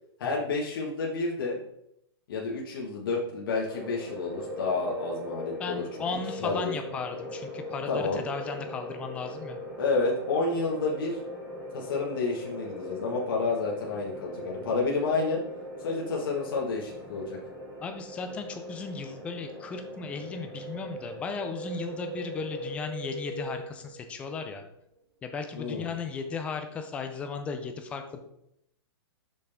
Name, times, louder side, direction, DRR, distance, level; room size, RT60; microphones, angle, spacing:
voice 1, 0.2-1.6 2.3-5.8 6.4-6.7 7.9-8.2 9.8-11.2 11.7-15.4 15.8-17.4 25.5-25.9, left 3 dB, 55° left, -3 dB, 1.6 m, -30 dB
sound 1, 3.6-22.7, equal, 10° right, 1.2 m, -41 dB
voice 2, 5.6-9.6 14.4-14.7 17.8-24.6 25.2-28.2, left 5 dB, 10° left, 6 dB, 0.4 m, -36 dB
Wind, 20.2-24.6 24.8-24.9, right 3 dB, 65° right, 1.7 m, -41 dB
6.3 x 5.6 x 3.5 m, 0.78 s
hypercardioid pair, 170°, 14 cm